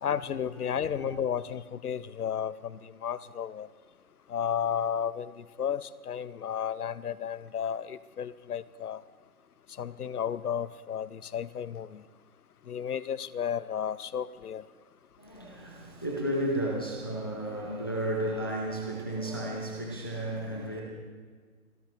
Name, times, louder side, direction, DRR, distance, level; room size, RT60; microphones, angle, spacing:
voice 1, 0.0-3.7 4.3-5.3 5.6-9.0 9.8-12.0 12.7-14.6, left 8 dB, 80° left, 17 dB, 0.8 m, -33 dB
voice 2, 15.2-20.8, right 1 dB, 15° left, -1 dB, 0.8 m, -33 dB
26.5 x 13.5 x 2.9 m, 1.6 s
hypercardioid pair, 180°, 44 cm